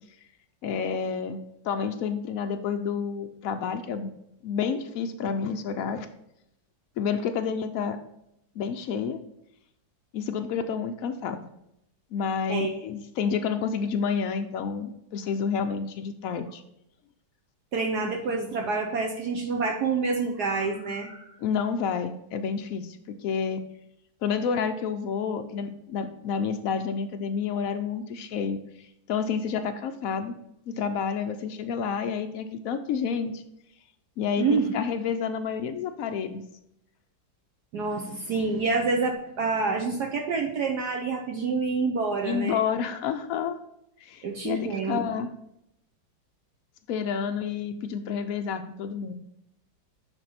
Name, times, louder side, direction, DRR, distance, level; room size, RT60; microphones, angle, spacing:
voice 1, 0.6-1.4 1.6-4.1 4.4-6.1 7.0-8.0 8.6-9.2 10.1-11.4 12.1-16.6 21.4-23.0 23.2-23.6 24.2-30.4 30.7-33.4 34.2-36.4 42.2-43.6 44.0-45.3 46.9-49.1, left 6 dB, 80° left, 7 dB, 0.7 m, -29 dB
voice 2, 17.7-21.3 34.4-34.7 37.7-42.6 44.2-45.0, right 4 dB, 65° right, 2 dB, 1.3 m, -27 dB
9.9 x 3.6 x 4.2 m, 0.82 s
omnidirectional pair, 2.1 m